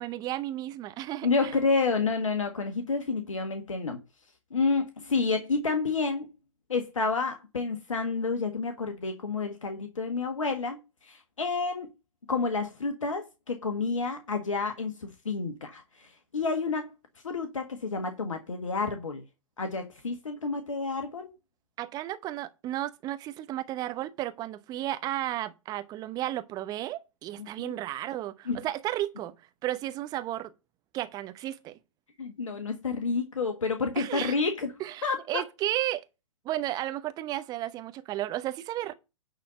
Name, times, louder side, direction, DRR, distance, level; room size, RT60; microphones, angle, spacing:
voice 1, 0.0-1.5 21.8-29.3 29.6-30.5 30.9-31.8 34.0-34.4 34.8-36.1 36.4-38.9, right 14 dB, 25° right, 0.9 m, -33 dB
voice 2, 1.2-4.0 4.5-6.3 6.7-11.9 12.3-16.9 17.2-19.2 19.6-21.3 27.4-27.7 28.5-28.6 32.2-34.7 35.0-35.4, left 4 dB, 75° left, 1.6 m, -29 dB
9.8 x 4.1 x 6.6 m
figure-of-eight pair, 120°, 17 cm